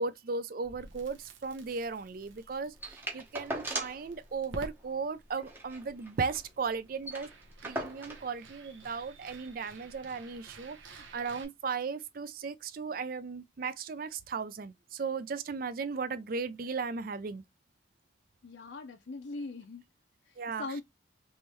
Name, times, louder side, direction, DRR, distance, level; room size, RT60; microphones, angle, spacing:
voice 1, 0.0-7.3 7.6-17.4 20.4-20.6, right 5 dB, 45° right, 0.4 m, -36 dB
Crackle, 0.6-11.4, right 2 dB, 80° right, 1.1 m, -52 dB
sound 1, 2.8-4.1 4.4-4.5 4.8-5.0 5.4-6.5 6.7-6.8 7.0-8.3 9.2-9.3, right 1 dB, 10° right, 0.7 m, -39 dB
voice 2, 18.4-19.8 20.3-20.8, left 3 dB, 70° left, 0.6 m, -41 dB
3.5 x 3.2 x 2.9 m
head